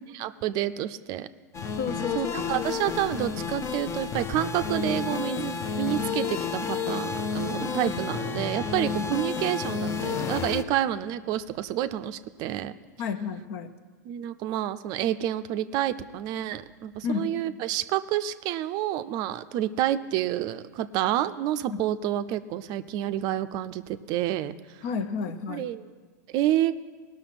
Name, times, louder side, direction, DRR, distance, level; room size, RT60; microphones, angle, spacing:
voice 1, 0.1-1.3 2.1-12.7 14.0-24.8 25.5-25.8 26.3-26.7, right 12 dB, 45° right, 12 dB, 0.5 m, -29 dB
sound 1, 1.5-10.6, left 5 dB, 30° left, 0.7 m, -31 dB
voice 2, 1.8-2.7 13.0-13.7 17.0-17.3 21.7-21.8 24.8-25.7, left 6 dB, 55° left, 11 dB, 0.9 m, -31 dB
18.5 x 6.3 x 5.9 m, 1.5 s
hypercardioid pair, 110°, 10 cm